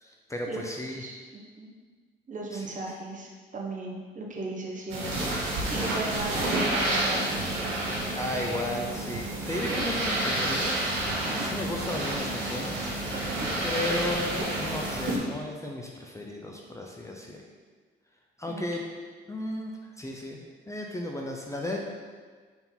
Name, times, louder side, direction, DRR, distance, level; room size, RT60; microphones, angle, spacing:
voice 1, 0.0-1.0 2.5-2.7 8.2-11.0 11.4-17.4 18.4-18.8 19.3-20.4 20.7-21.8, left 1 dB, 15° left, 0 dB, 0.7 m, -34 dB
voice 2, 1.0-1.7 2.3-7.5 9.7-9.9 11.1-11.4 13.1-13.5 18.5-18.6, right 2 dB, 40° right, -2 dB, 1.3 m, -37 dB
sound 1, 4.9-15.2, right 1 dB, 90° right, 1.5 m, -29 dB
4.8 x 3.8 x 5.4 m, 1.5 s
cardioid pair, 90°, 20 cm